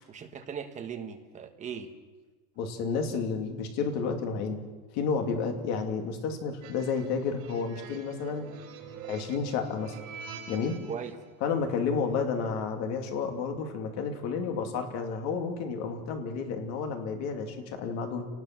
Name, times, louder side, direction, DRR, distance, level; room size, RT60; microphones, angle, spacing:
voice 1, 0.1-1.9 10.9-11.1, right 7 dB, 15° right, 6 dB, 1.4 m, -38 dB
voice 2, 2.6-4.6 4.9-8.5 9.1-10.0 10.5-10.8 11.4-18.3, left 5 dB, 40° left, 4 dB, 2.7 m, -31 dB
sound 1, 6.6-11.1, right 6 dB, 65° right, 6.7 m, -45 dB
29.5 x 19.5 x 6.1 m, 1.3 s
supercardioid pair, 175°, 43 cm